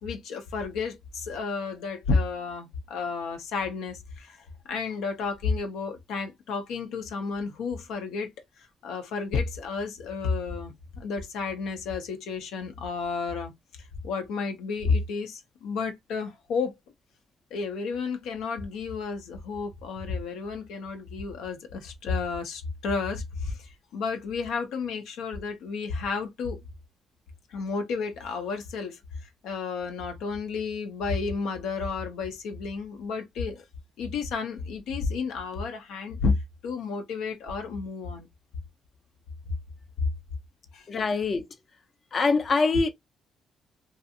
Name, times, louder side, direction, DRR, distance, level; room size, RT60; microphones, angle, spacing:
voice 1, 0.0-4.4 4.7-8.3 8.8-13.5 14.0-16.8 17.5-26.6 27.5-33.6 34.0-36.3 36.6-38.3 40.7-40.9, left 4 dB, 85° left, 0.6 m, -31 dB
voice 2, 40.9-41.4 42.1-42.9, left 4 dB, 40° left, 0.5 m, -24 dB
2.5 x 2.4 x 2.6 m
cardioid pair, 90°, 0 cm